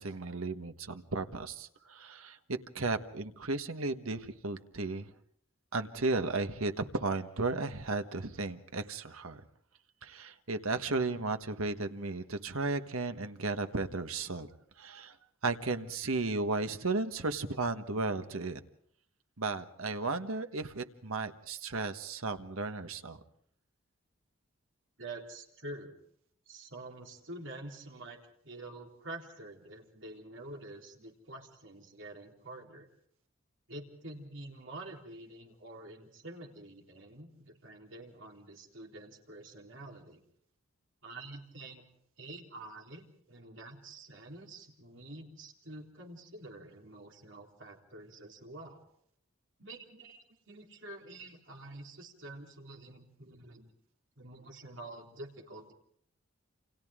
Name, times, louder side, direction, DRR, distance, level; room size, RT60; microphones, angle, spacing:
voice 1, 0.0-5.1 5.7-9.4 10.0-14.5 14.8-15.1 15.4-18.6 19.4-23.2, right 3 dB, 80° right, 8 dB, 1.4 m, -34 dB
voice 2, 25.0-26.0 26.5-28.2 28.4-32.9 33.7-40.2 41.0-41.8 42.2-48.9 49.6-53.7 54.2-55.7, right 2 dB, 60° right, 1 dB, 3.8 m, -47 dB
29.0 x 27.0 x 3.7 m, 0.66 s
head